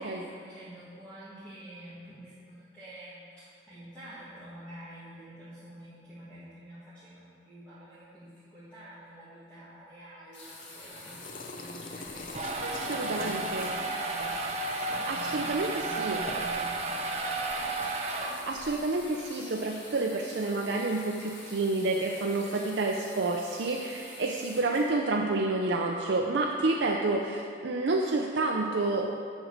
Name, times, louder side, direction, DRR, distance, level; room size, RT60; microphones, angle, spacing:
voice 1, 0.0-12.3 12.8-14.3 14.8-17.4, right 1 dB, 10° left, -14 dB, 2.0 m, -48 dB
sound 1, 10.3-25.7 26.6-26.7, left 2 dB, 80° left, 2.2 m, -47 dB
sound 2, 10.8-18.0, left 3 dB, 45° left, 0.6 m, -45 dB
sound 3, 12.1-18.8, right 3 dB, 35° right, 0.8 m, -33 dB
voice 2, 12.6-13.7 15.1-16.3 18.3-29.2, right 2 dB, 75° right, 0 dB, 0.6 m, -29 dB
8.0 x 6.4 x 6.5 m, 2.3 s
head